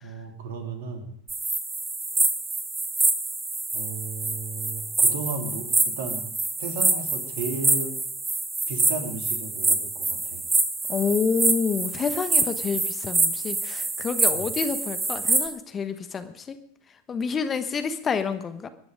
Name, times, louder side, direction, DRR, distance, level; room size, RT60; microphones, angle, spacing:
voice 1, 0.0-1.1 3.7-6.2 6.6-7.9 8.7-10.4 14.3-14.5, right 4 dB, 60° right, 4 dB, 3.1 m, -34 dB
sound 1, 1.3-15.5, right 3 dB, 15° right, 2.5 m, -26 dB
voice 2, 10.9-16.6 17.1-18.7, left 6 dB, 25° left, 10 dB, 1.2 m, -28 dB
22.0 x 10.5 x 5.2 m, 0.67 s
figure-of-eight pair, 85°, 0 cm